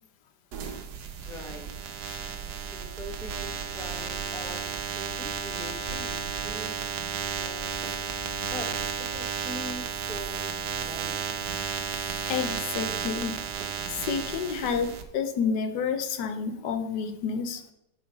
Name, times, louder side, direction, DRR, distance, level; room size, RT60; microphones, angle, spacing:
sound 1, 0.5-15.0, right 7 dB, 70° right, 1.3 m, -33 dB
voice 1, 1.3-1.7 2.7-7.7 8.4-8.7 9.0-11.1, left 1 dB, ahead, 2 dB, 0.9 m, -43 dB
voice 2, 12.3-13.4 13.9-17.7, left 6 dB, 70° left, 8 dB, 1.4 m, -30 dB
10.0 x 5.0 x 4.0 m, 0.86 s
omnidirectional pair, 1.9 m